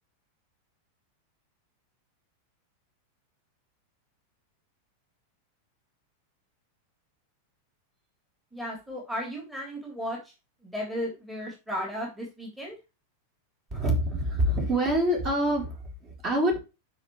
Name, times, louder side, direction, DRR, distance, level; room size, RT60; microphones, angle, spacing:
voice 1, 8.5-10.2 10.6-12.7, equal, 5° right, -3 dB, 3.5 m, -34 dB
voice 2, 13.7-16.6, right 1 dB, 25° right, 0 dB, 3.9 m, -26 dB
9.5 x 6.0 x 3.2 m, 0.27 s
figure-of-eight pair, 90°, 0 cm